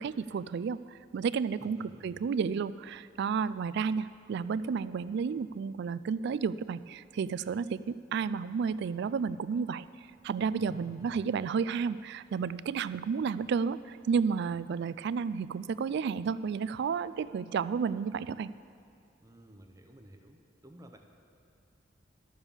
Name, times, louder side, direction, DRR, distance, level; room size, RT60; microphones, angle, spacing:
voice 1, 0.0-1.8 2.0-9.9 10.2-18.5, right 6 dB, 60° right, 16 dB, 0.3 m, -32 dB
voice 2, 1.6-2.2 10.6-11.2 19.2-21.0, equal, 15° right, 4 dB, 0.7 m, -53 dB
12.5 x 7.1 x 7.2 m, 2.5 s
head